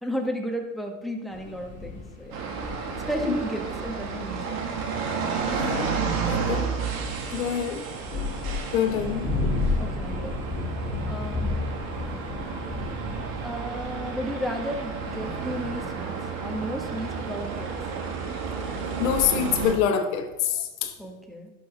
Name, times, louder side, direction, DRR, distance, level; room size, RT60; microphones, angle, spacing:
voice 1, 0.0-2.5 2.9-4.7 9.8-10.5 11.1-11.7 13.4-17.8 21.0-21.5, equal, ahead, 1 dB, 1.6 m, -33 dB
sound 1, 1.3-19.7, left 3 dB, 20° left, 2.5 m, -35 dB
sound 2, 2.3-19.7, right 5 dB, 60° right, 2.0 m, -32 dB
voice 2, 5.5-5.9 6.3-6.7 7.3-7.8 8.7-9.3 19.0-20.9, left 8 dB, 80° left, 6 dB, 1.2 m, -25 dB
11.0 x 6.1 x 3.5 m, 1.0 s
hypercardioid pair, 95°, 40 cm